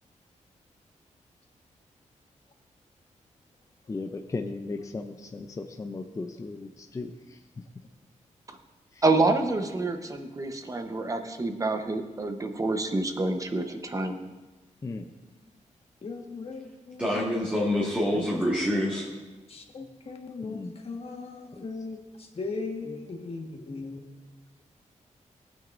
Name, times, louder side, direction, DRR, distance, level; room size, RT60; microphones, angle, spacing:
voice 1, 3.9-7.6 8.9-9.0 14.8-15.1 18.1-18.3 20.4-20.8 21.5-21.7, left 3 dB, 25° left, 5 dB, 0.5 m, -37 dB
voice 2, 9.0-14.2, right 2 dB, 25° right, 6 dB, 1.0 m, -27 dB
voice 3, 16.0-17.5 19.5-24.0, left 3 dB, 50° left, 2 dB, 1.5 m, -38 dB
voice 4, 17.0-19.1, left 1 dB, 10° right, -5 dB, 1.8 m, -26 dB
18.5 x 8.9 x 2.6 m, 1.2 s
wide cardioid pair, 115°, 13 cm